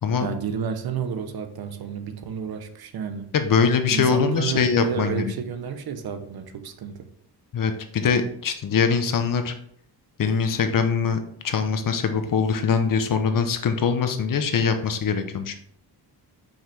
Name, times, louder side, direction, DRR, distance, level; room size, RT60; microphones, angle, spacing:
voice 1, 0.2-3.3 3.9-7.1, right 7 dB, 65° right, 8 dB, 0.9 m, -30 dB
voice 2, 3.3-5.3 7.5-9.5 10.2-11.2 11.4-15.6, left 6 dB, 55° left, 7 dB, 0.8 m, -22 dB
5.7 x 5.6 x 3.4 m, 0.63 s
wide cardioid pair, 145°, 39 cm